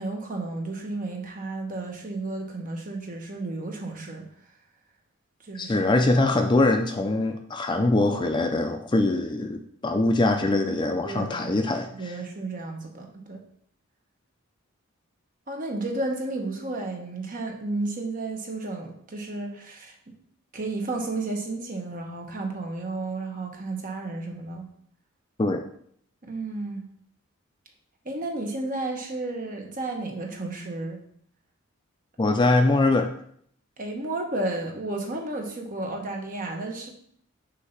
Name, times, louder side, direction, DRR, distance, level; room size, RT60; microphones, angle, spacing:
voice 1, 0.0-4.3 5.4-5.9 11.0-11.5 12.0-13.4 15.5-19.9 20.5-24.7 26.2-26.9 28.0-31.0 33.8-36.9, right 2 dB, 40° right, 2 dB, 1.1 m, -32 dB
voice 2, 5.6-12.2 25.4-25.6 32.2-33.1, left 2 dB, 20° left, 5 dB, 0.4 m, -23 dB
6.6 x 2.8 x 5.6 m, 0.64 s
head